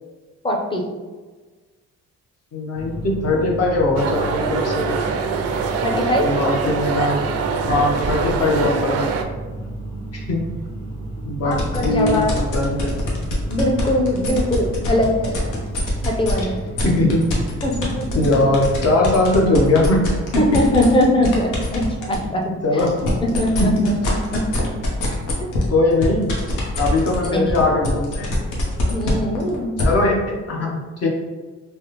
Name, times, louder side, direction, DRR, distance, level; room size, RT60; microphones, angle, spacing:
voice 1, 0.4-0.8 5.8-6.3 11.4-12.3 13.4-15.4 16.0-16.6 17.6-18.1 20.4-22.4 22.7-22.9 23.4-23.9 24.3-24.7 25.4-25.5 27.3-27.4 28.9-29.8, left 1 dB, 15° left, 0 dB, 0.5 m, -21 dB
voice 2, 2.5-5.0 6.2-7.2 7.7-9.1 10.1-10.6 11.2-12.9 16.8-17.4 18.1-20.4 22.6-23.1 23.6-23.9 25.7-26.4 26.8-28.3 29.8-31.1, left 2 dB, 55° left, -1 dB, 0.8 m, -20 dB
sound 1, 2.7-19.0, right 2 dB, 70° left, 1.2 m, -32 dB
sound 2, 4.0-9.2, right 5 dB, 55° right, 0.4 m, -24 dB
sound 3, 11.5-16.4 16.8-22.2 22.6-29.8, left 2 dB, 90° left, 0.8 m, -25 dB
3.2 x 2.1 x 2.9 m, 1.3 s
cardioid pair, 90°, 30 cm